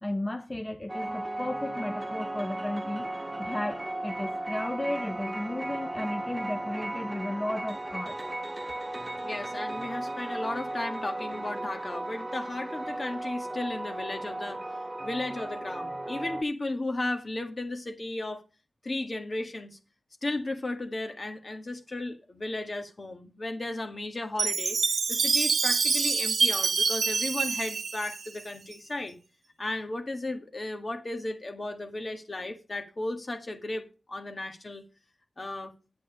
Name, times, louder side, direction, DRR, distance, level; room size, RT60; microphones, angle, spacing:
voice 1, 0.0-3.1 3.4-8.2, left 1 dB, 20° left, 1.0 m, -34 dB
sound 1, 0.9-16.4, right 1 dB, 20° right, 1.1 m, -35 dB
voice 2, 9.2-14.6 15.0-18.4 18.8-19.8 20.2-24.8 25.1-29.2 29.6-34.8 35.4-35.7, left 2 dB, 45° left, 1.8 m, -35 dB
Chime, 24.4-28.7, right 5 dB, 80° right, 0.9 m, -26 dB
8.9 x 8.3 x 5.0 m
cardioid pair, 55°, 0 cm